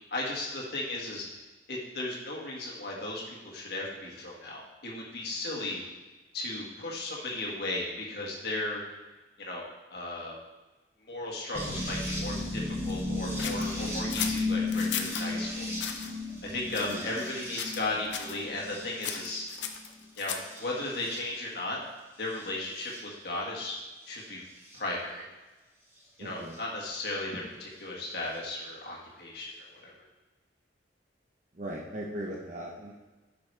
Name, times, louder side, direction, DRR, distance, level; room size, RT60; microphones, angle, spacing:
voice 1, 0.1-1.3 1.7-5.8 6.3-8.8 9.4-10.3 11.0-15.7 16.4-19.4 20.2-21.8 22.2-23.8 24.1-24.4 24.7-25.3 26.2-29.9, left 2 dB, 65° left, -3 dB, 1.8 m, -36 dB
sound 1, 11.5-19.7 20.4-21.2 22.4-23.0 24.7-24.8 26.5-26.6, left 2 dB, 15° right, 1.4 m, -34 dB
sound 2, 13.4-15.3 15.8-16.1 16.7-17.3 17.6-17.9 18.1-18.4 19.0-20.6, left 8 dB, 80° left, 0.7 m, -36 dB
voice 2, 26.2-26.6 31.5-32.9, right 1 dB, 45° right, -3 dB, 1.0 m, -38 dB
11.0 x 6.1 x 3.4 m, 1.2 s
head